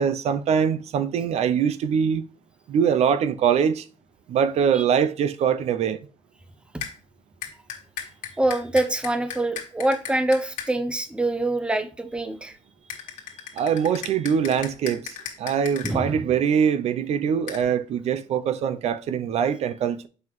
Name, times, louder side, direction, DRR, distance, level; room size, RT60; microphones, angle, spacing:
voice 1, 0.0-2.3 2.7-3.9 4.3-6.0 13.5-20.1, right 7 dB, 60° right, 0.4 m, -23 dB
sound 1, 6.8-6.9 7.4-10.7 12.9-15.9 17.5-17.6, left 9 dB, 85° left, 1.7 m, -35 dB
voice 2, 8.4-12.6 15.8-16.2, right 1 dB, 10° right, 0.6 m, -25 dB
7.6 x 5.5 x 3.0 m
cardioid pair, 140°, 13 cm